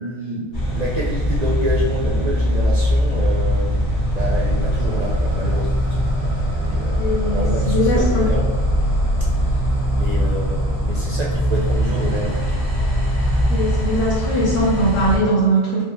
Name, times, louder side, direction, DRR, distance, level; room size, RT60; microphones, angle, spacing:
voice 1, 0.0-8.5 9.4-12.6, right 1 dB, 55° right, -4 dB, 0.4 m, -29 dB
sound 1, 0.5-15.2, equal, 45° left, 1.8 m, -21 dB
voice 2, 7.0-8.3 13.5-15.8, right 1 dB, 75° left, -8 dB, 1.3 m, -20 dB
4.7 x 3.2 x 2.2 m, 1.3 s
omnidirectional pair, 1.3 m